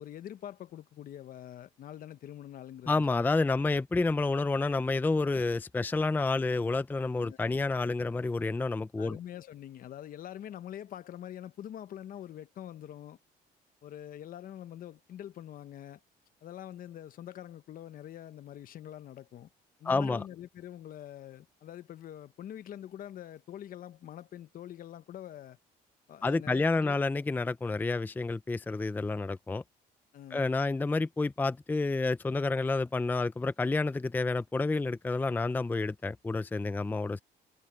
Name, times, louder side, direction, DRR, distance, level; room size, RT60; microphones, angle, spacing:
voice 1, 0.0-3.1 7.2-7.6 9.0-13.2 13.8-16.0 16.4-19.5 19.8-25.6 26.1-27.0 30.1-30.5, left 11 dB, 55° left, 1.1 m, -45 dB
voice 2, 2.9-9.2 19.9-20.2 26.2-29.6 30.3-37.2, left 3 dB, 10° left, 0.5 m, -29 dB
cardioid pair, 110°, 17 cm